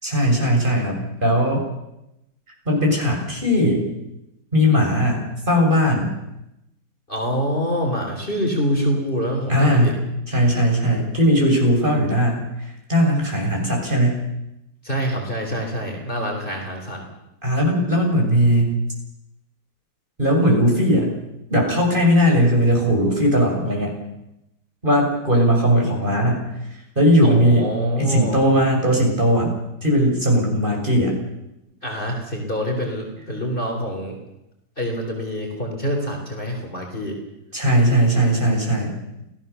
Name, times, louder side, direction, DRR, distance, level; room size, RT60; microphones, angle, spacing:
voice 1, 0.0-1.6 2.7-3.9 4.5-6.1 9.5-10.0 10.3-12.5 12.9-14.2 17.4-18.8 20.2-21.1 21.5-23.9 24.8-26.5 27.0-27.7 28.0-29.5 29.8-31.2 37.5-38.9, equal, 30° right, -1 dB, 7.0 m, -18 dB
voice 2, 7.1-9.9 14.8-17.1 27.2-28.4 31.8-34.2 34.8-37.2, equal, 30° left, 1 dB, 3.9 m, -26 dB
28.5 x 17.5 x 7.0 m, 0.88 s
omnidirectional pair, 1.8 m